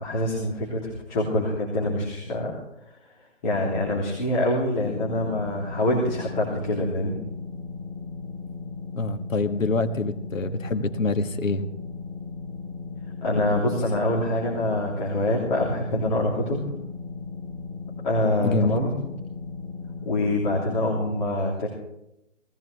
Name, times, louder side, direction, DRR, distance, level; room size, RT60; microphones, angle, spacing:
voice 1, 0.0-2.6 3.4-7.2 13.2-16.6 18.0-18.9 20.1-21.7, left 1 dB, 35° left, -4 dB, 3.5 m, -25 dB
sound 1, 4.8-20.8, left 4 dB, 15° left, 1.8 m, -37 dB
voice 2, 8.9-11.6 18.4-18.8, left 3 dB, 85° left, 9 dB, 1.6 m, -25 dB
19.5 x 16.5 x 3.4 m, 0.84 s
hypercardioid pair, 155°, 38 cm